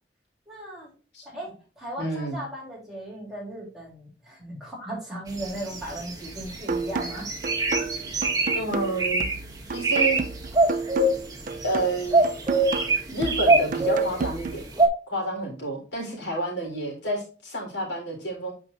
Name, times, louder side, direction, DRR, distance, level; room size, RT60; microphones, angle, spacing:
voice 1, 0.5-0.9 1.3-1.5 1.8-7.3 16.1-16.2, right 1 dB, 5° right, -5 dB, 3.5 m, -37 dB
voice 2, 2.0-2.4 8.0-8.3 8.5-9.3 9.7-10.2 11.6-12.2 13.1-14.6 15.1-18.5, right 2 dB, 85° left, -1 dB, 3.8 m, -29 dB
sound 1, 5.4-6.6 7.0-8.6 9.0-9.3 9.7-10.2 10.5-11.8 12.1-14.2 14.8-14.9, right 2 dB, 20° right, 1.3 m, -22 dB
sound 2, 6.7-14.7, right 4 dB, 50° right, 0.5 m, -32 dB
8.9 x 5.1 x 2.5 m, 0.37 s
head